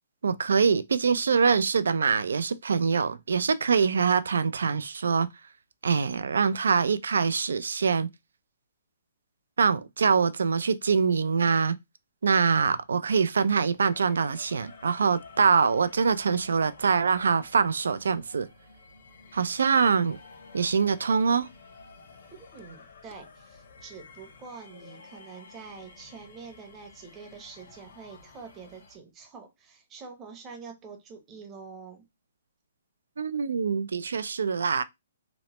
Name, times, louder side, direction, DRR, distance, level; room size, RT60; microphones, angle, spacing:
voice 1, 0.2-5.3 5.8-8.1 9.6-11.8 12.2-18.5 19.3-20.2 20.5-21.5 33.2-34.8, right 5 dB, 85° right, 0.3 m, -24 dB
sound 1, 13.9-29.0, left 4 dB, 65° left, 0.9 m, -52 dB
voice 2, 22.3-32.1, right 5 dB, 20° right, 0.7 m, -46 dB
2.9 x 2.1 x 2.9 m
hypercardioid pair, 155°, 0 cm